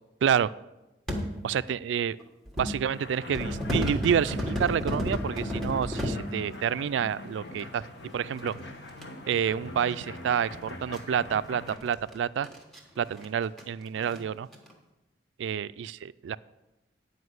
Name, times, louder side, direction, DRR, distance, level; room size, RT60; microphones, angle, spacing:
voice 1, 0.2-0.5 1.4-2.2 2.6-7.8 8.1-8.5 9.3-12.5 13.0-14.5 15.4-16.4, right 8 dB, 85° right, 17 dB, 0.3 m, -28 dB
sound 1, 1.1-1.3 2.2-2.8 3.3-6.2 7.6-7.7 8.4-9.0 10.1-10.2 10.4-10.5 10.9-11.0 11.7-13.3 13.6-13.7 14.0-14.2 14.5-14.7, equal, ahead, 1.4 m, -31 dB
sound 2, 2.9-11.8, left 2 dB, 65° left, 1.1 m, -42 dB
9.8 x 5.0 x 7.9 m, 0.99 s
head